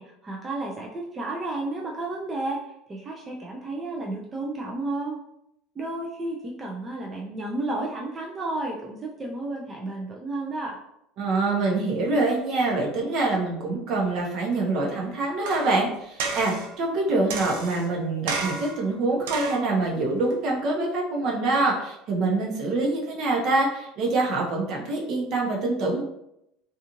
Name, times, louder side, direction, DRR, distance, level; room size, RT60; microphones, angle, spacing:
voice 1, 0.0-2.6 2.9-5.2 5.8-10.8, right 2 dB, 25° right, -2 dB, 0.5 m, -32 dB
voice 2, 11.2-26.0, right 2 dB, 60° right, -1 dB, 0.8 m, -25 dB
sound 1, 15.5-15.8 16.2-16.7 17.3-17.9 18.3-18.8 19.3-19.7 20.3-20.4, right 3 dB, 80° right, 0.5 m, -31 dB
2.5 x 2.4 x 2.9 m, 0.80 s
supercardioid pair, 95°, 0 cm